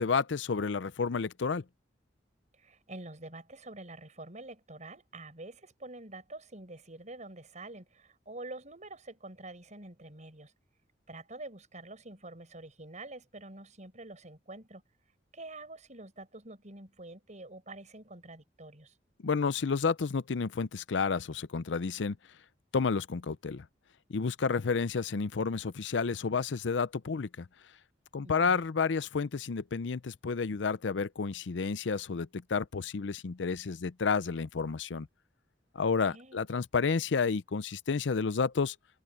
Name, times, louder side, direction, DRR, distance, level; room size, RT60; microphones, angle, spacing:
voice 1, 0.0-1.6 19.2-22.2 22.7-23.6 24.1-27.5 28.1-35.1 35.7-38.7, left 5 dB, 80° left, 0.6 m, -30 dB
voice 2, 2.5-10.5 11.1-14.8 15.3-18.9 28.2-28.6 35.8-36.4, right 2 dB, 40° right, 6.2 m, -47 dB
head